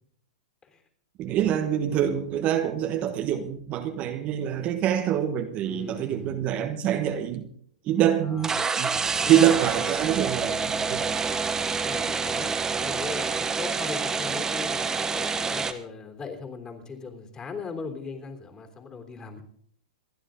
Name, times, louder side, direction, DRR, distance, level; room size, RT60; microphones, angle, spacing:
voice 1, 1.2-7.5 7.8-8.5 8.8-8.9 9.3-11.2, right 10 dB, 35° right, 1.3 m, -25 dB
voice 2, 5.7-6.4 8.2-8.6 9.2-9.6 11.8-19.4, left 4 dB, 20° left, 3.3 m, -38 dB
sound 1, 8.4-15.7, right 5 dB, 15° right, 1.2 m, -27 dB
27.0 x 10.5 x 3.8 m
hypercardioid pair, 125°, 4 cm